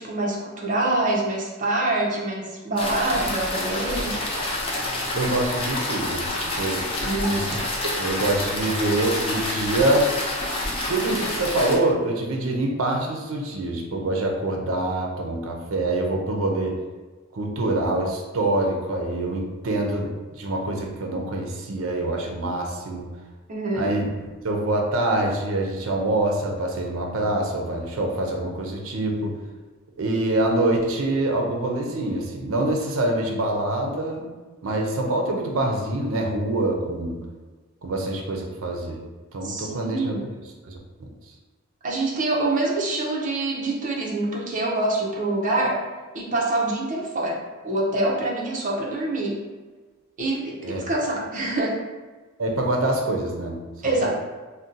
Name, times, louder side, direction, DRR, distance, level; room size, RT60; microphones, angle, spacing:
voice 1, 0.0-4.2 7.0-7.5 23.5-24.0 39.4-40.2 41.8-45.8 46.1-49.4 50.2-51.8 53.8-54.1, right 2 dB, 40° right, -3 dB, 0.6 m, -25 dB
sound 1, 2.8-11.8, left 1 dB, 30° left, 0.5 m, -28 dB
voice 2, 5.1-6.3 6.6-6.8 7.2-10.1 10.6-16.8 17.3-23.1 23.7-29.3 30.0-34.3 34.6-37.2 37.8-39.0 39.3-40.2 40.7-40.8 50.6-50.8 52.4-53.5, right 2 dB, 80° right, 1 dB, 0.5 m, -25 dB
2.6 x 2.1 x 3.8 m, 1.3 s
head